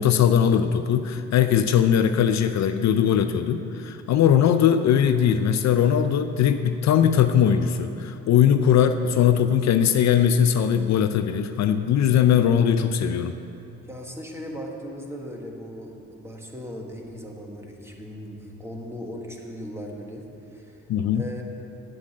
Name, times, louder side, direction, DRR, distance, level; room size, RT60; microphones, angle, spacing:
voice 1, 0.0-13.3 20.9-21.3, left 9 dB, 65° left, 9 dB, 0.5 m, -20 dB
voice 2, 13.9-20.2 20.5-20.8 21.1-21.4, equal, 10° right, 0 dB, 1.6 m, -38 dB
7.8 x 7.6 x 8.6 m, 2.8 s
cardioid pair, 90°, 30 cm